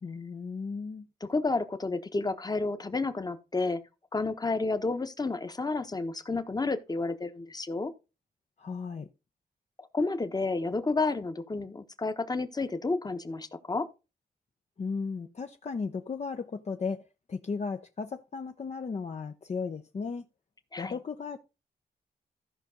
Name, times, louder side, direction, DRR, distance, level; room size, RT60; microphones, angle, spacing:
voice 1, 0.0-1.1 8.6-9.1 14.8-17.0 17.3-20.3 20.8-21.4, left 5 dB, 40° left, 0.7 m, -35 dB
voice 2, 1.2-3.8 4.1-7.9 9.8-13.9 20.7-20.9, left 3 dB, 25° left, 1.1 m, -31 dB
14.5 x 5.3 x 3.8 m
cardioid pair, 85°, 17 cm